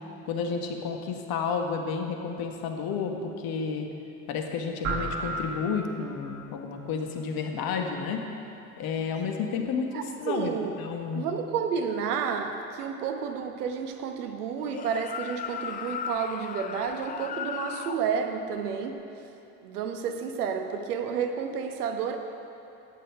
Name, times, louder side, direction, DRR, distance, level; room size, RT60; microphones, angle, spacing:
voice 1, 0.2-3.9 4.3-8.3 8.8-11.2, left 5 dB, 50° left, 3 dB, 1.6 m, -31 dB
sound 1, 4.8-6.4, right 3 dB, 40° right, 1.9 m, -33 dB
voice 2, 9.9-10.7 11.1-19.0 19.6-22.2, right 6 dB, 80° right, 5 dB, 1.1 m, -31 dB
sound 2, 14.6-18.0, left 7 dB, 20° left, 0.4 m, -36 dB
14.0 x 9.4 x 4.7 m, 2.8 s
hypercardioid pair, 70°, 45 cm